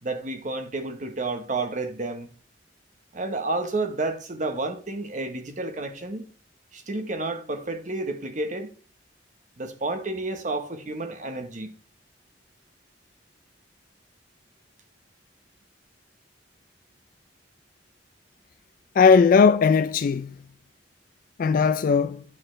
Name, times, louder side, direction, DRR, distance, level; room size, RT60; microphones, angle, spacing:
voice 1, 0.0-2.3 3.1-6.2 6.7-8.7 9.6-11.7, right 2 dB, 45° right, 1.0 m, -30 dB
voice 2, 19.0-20.4 21.4-22.2, left 5 dB, 50° left, 0.3 m, -18 dB
8.6 x 6.5 x 3.2 m
head